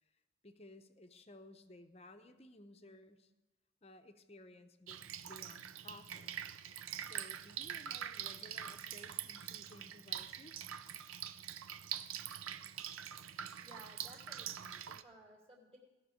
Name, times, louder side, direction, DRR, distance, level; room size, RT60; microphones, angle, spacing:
voice 1, 0.4-3.3 3.8-6.3 7.0-10.7, left 1 dB, 30° left, 8 dB, 0.8 m, -57 dB
Drip, 4.9-15.0, right 10 dB, 85° right, 0.5 m, -44 dB
voice 2, 13.6-15.8, right 1 dB, 30° right, 0 dB, 2.7 m, -58 dB
17.0 x 5.9 x 8.3 m, 1.1 s
head